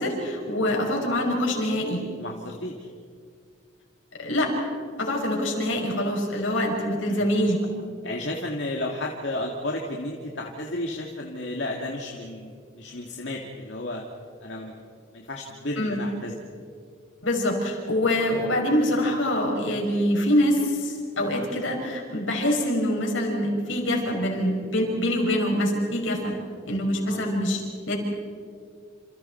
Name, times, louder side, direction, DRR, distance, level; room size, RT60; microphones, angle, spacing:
voice 1, 0.0-2.0 4.2-4.5 5.0-7.6 15.8-16.0 17.2-26.3 26.7-28.0, left 1 dB, 85° left, 0 dB, 6.0 m, -25 dB
voice 2, 2.2-2.9 7.1-7.3 8.0-14.0 14.4-14.8 15.1-16.3 27.0-27.3, left 1 dB, 65° left, 0 dB, 2.1 m, -33 dB
28.5 x 28.5 x 4.5 m, 2.2 s
head